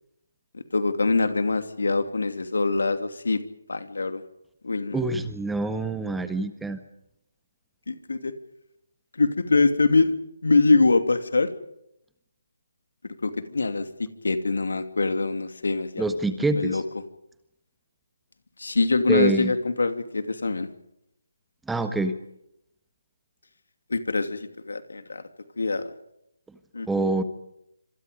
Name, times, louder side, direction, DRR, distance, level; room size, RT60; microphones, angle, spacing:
voice 1, 0.5-3.4 3.7-4.2 4.6-5.0 7.9-8.3 9.2-10.1 10.4-11.5 13.0-16.0 16.5-16.8 18.6-20.7 23.9-25.2 25.6-25.8 26.7-26.9, left 3 dB, 75° left, 8 dB, 2.8 m, -24 dB
voice 2, 4.9-6.8 16.0-16.8 19.1-19.5 21.7-22.2 26.9-27.2, right 2 dB, 5° right, 9 dB, 1.5 m, -26 dB
26.5 x 26.5 x 5.3 m, 0.79 s
figure-of-eight pair, 155°, 0 cm